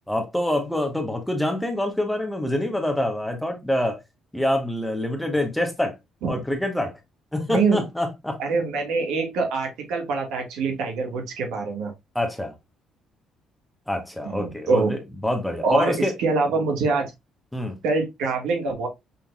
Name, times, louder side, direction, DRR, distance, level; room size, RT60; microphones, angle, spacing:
voice 1, 0.1-4.0 4.3-5.9 6.3-6.9 7.3-8.4 12.1-12.5 13.9-16.1 17.5-17.8, left 1 dB, 5° left, 0.9 m, -26 dB
voice 2, 7.5-7.8 8.4-11.9 14.2-14.9 15.6-17.1 17.8-18.9, right 4 dB, 85° right, 1.5 m, -24 dB
5.6 x 3.2 x 2.3 m
cardioid pair, 145°, 0 cm